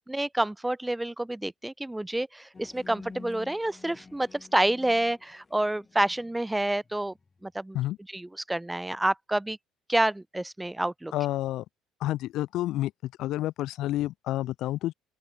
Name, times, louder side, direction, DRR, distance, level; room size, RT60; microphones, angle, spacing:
voice 1, 0.1-7.1 7.4-7.8 8.1-9.6 9.9-11.1, right 1 dB, 5° right, 0.4 m, -28 dB
sound 1, 2.5-7.4, left 4 dB, 25° left, 2.2 m, -49 dB
voice 2, 11.1-11.6 12.0-14.9, left 15 dB, 70° left, 0.6 m, -29 dB
open air
cardioid pair, 115°, 0 cm